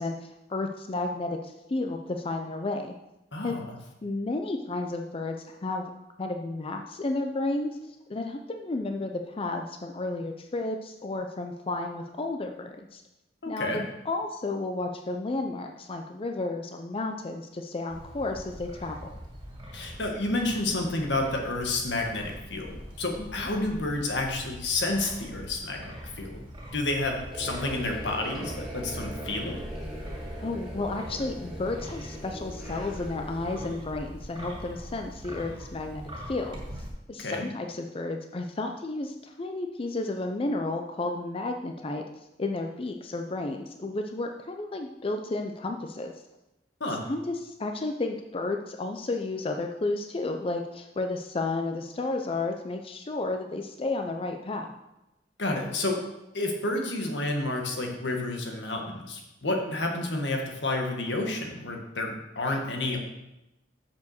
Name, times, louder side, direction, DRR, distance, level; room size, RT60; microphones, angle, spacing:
voice 1, 0.0-2.9 3.4-3.6 4.0-5.9 6.2-13.0 13.5-19.1 23.2-23.5 30.4-36.6 37.1-42.0 42.4-46.1 47.0-54.7, left 2 dB, 30° left, 4 dB, 0.5 m, -32 dB
voice 2, 3.3-3.8 13.4-13.8 19.7-26.4 26.7-29.6 37.2-37.5 46.8-47.1 55.4-56.0 56.3-63.0, left 2 dB, 80° left, 2 dB, 1.5 m, -30 dB
Wind, 17.9-36.9, equal, 25° right, 2.7 m, -43 dB
sound 1, 27.3-33.7, equal, ahead, 2.8 m, -40 dB
6.9 x 5.6 x 6.5 m, 0.95 s
head